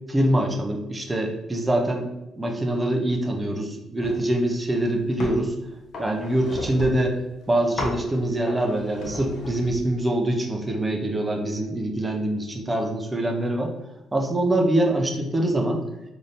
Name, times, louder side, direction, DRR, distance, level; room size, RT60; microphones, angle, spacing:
voice 1, 0.1-2.1 2.4-5.5 6.0-7.2 7.5-13.7 14.1-15.8, right 1 dB, 10° right, 2 dB, 0.4 m, -24 dB
sound 1, 4.0-4.3 4.7-5.5 5.9-7.1 7.8-8.1 8.5-9.8, left 1 dB, 45° left, 0.7 m, -34 dB
3.3 x 2.5 x 4.1 m, 0.96 s
cardioid pair, 180°, 0 cm